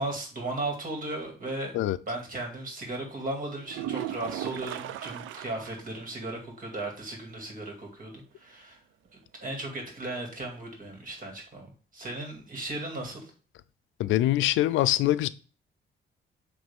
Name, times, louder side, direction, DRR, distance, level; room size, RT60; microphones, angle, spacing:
voice 1, 0.0-1.7 2.1-8.8 9.4-13.2, right 2 dB, 45° right, 2.5 m, -36 dB
sound 1, 3.6-5.9 6.2-6.3 6.8-6.9 10.7-10.8, right 13 dB, 80° right, 0.4 m, -36 dB
voice 2, 14.0-15.3, left 14 dB, 80° left, 0.4 m, -24 dB
7.9 x 3.2 x 3.7 m
cardioid pair, 90°, 20 cm